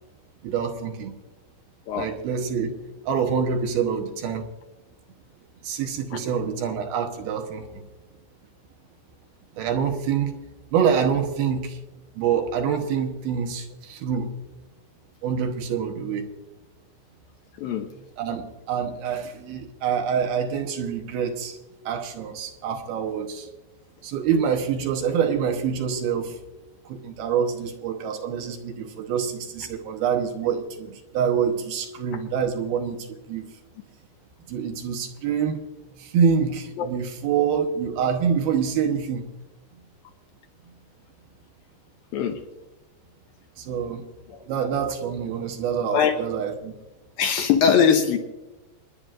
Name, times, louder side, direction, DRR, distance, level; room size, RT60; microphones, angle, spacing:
voice 1, 0.4-1.1 2.0-2.8 3.1-4.5 5.6-7.8 9.6-10.3 10.7-11.8 12.2-14.3 15.2-16.3 18.2-21.6 21.9-23.5 24.0-26.4 26.9-33.5 34.5-35.6 36.0-39.3 43.6-44.0 44.5-46.7, right 7 dB, 70° right, 3 dB, 2.7 m, -26 dB
voice 2, 47.2-48.2, left 7 dB, 75° left, 4 dB, 2.3 m, -21 dB
27.0 x 10.5 x 2.5 m, 1.1 s
omnidirectional pair, 4.9 m